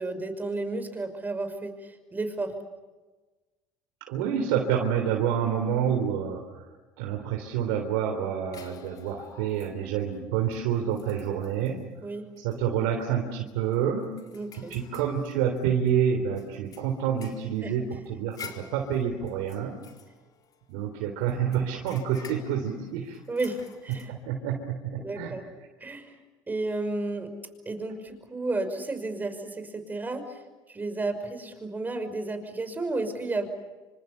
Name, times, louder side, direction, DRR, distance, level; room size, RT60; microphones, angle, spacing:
voice 1, 0.0-2.5 12.0-12.2 14.3-14.7 17.6-17.7 23.3-24.1 25.0-25.4 25.8-26.2 26.5-27.3 27.7-30.4 30.7-33.5, right 2 dB, 20° right, 9 dB, 5.7 m, -32 dB
voice 2, 4.1-6.7 7.0-11.8 12.4-14.1 14.7-19.8 20.7-23.2 23.9-25.3, right 8 dB, 80° right, 3 dB, 3.6 m, -28 dB
sound 1, 8.5-10.0 10.5-10.6 10.9-11.8 12.4-12.6 12.9-13.0 13.5-15.9 16.4-20.8 21.3-24.1, left 6 dB, 45° left, 4.3 m, -49 dB
27.5 x 26.0 x 7.0 m, 1.2 s
supercardioid pair, 95°, 9 cm